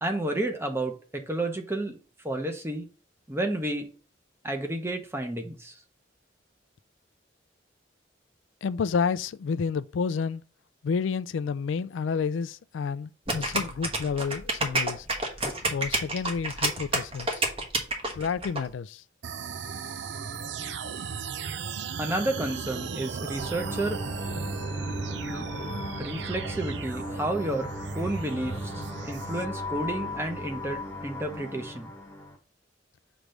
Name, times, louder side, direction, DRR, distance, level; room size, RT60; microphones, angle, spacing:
voice 1, 0.0-2.0 2.2-2.9 3.3-3.9 4.4-5.8 22.0-24.0 25.3-25.5 26.0-27.7 27.9-31.9, right 1 dB, 15° right, 0.9 m, -31 dB
voice 2, 8.6-10.4 10.8-15.1 15.6-17.5 18.1-19.0, left 5 dB, 85° left, 0.4 m, -30 dB
sound 1, 13.3-18.6, right 2 dB, 30° right, 1.2 m, -28 dB
sound 2, 19.2-29.5, right 5 dB, 65° right, 0.5 m, -36 dB
sound 3, 23.4-32.4, left 1 dB, 10° left, 1.2 m, -36 dB
6.0 x 3.3 x 5.2 m
head